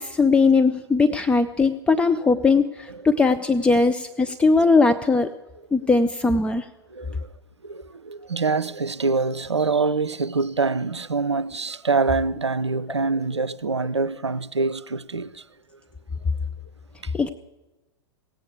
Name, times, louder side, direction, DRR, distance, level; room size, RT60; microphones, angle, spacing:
voice 1, 0.0-5.3 5.7-6.7 17.1-17.3, left 4 dB, 5° left, 0.4 m, -19 dB
voice 2, 6.9-7.3 7.6-15.3, right 4 dB, 85° right, 0.5 m, -25 dB
17.0 x 8.3 x 8.3 m
figure-of-eight pair, 100°, 14 cm